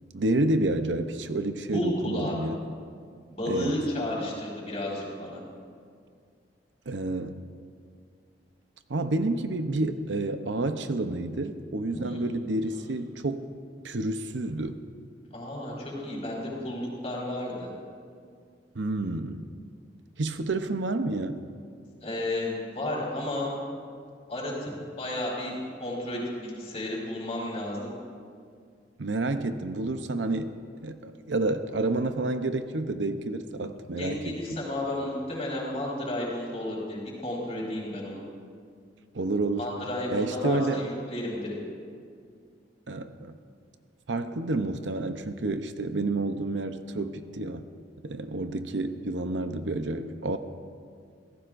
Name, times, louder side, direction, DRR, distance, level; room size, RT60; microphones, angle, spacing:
voice 1, 0.1-2.6 3.5-3.8 6.9-7.4 8.9-13.5 13.8-14.8 18.7-19.4 20.2-21.4 29.0-30.5 30.8-34.6 39.1-39.7 40.1-40.8 42.9-43.4 44.1-47.7 48.0-50.4, right 2 dB, 85° right, 9 dB, 0.7 m, -29 dB
voice 2, 1.7-2.4 3.3-5.4 11.9-12.2 15.3-17.7 22.0-23.5 24.3-27.9 34.0-38.2 39.6-41.6, left 1 dB, 35° left, -4 dB, 4.6 m, -32 dB
26.0 x 17.0 x 2.6 m, 2.2 s
head